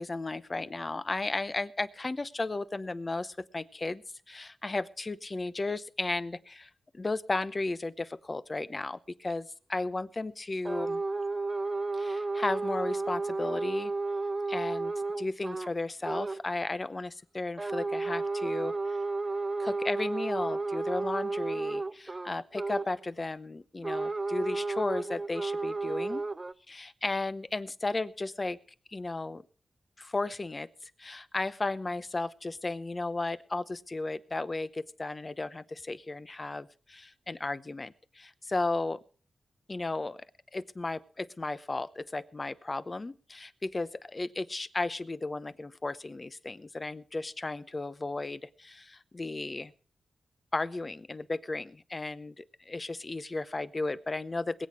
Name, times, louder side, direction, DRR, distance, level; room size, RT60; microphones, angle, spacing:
voice 1, 0.0-11.0 11.9-13.9 14.5-18.7 19.6-26.2 26.7-28.6 28.9-29.4 30.0-39.0 39.7-40.2 40.5-49.7 50.5-54.7, left 2 dB, 35° left, 14 dB, 0.8 m, -34 dB
sound 1, 10.6-15.7 16.0-16.4 17.6-22.9 23.8-26.5, right 3 dB, 30° right, 0.6 m, -32 dB
21.0 x 8.4 x 4.8 m, 0.43 s
cardioid pair, 75°, 0 cm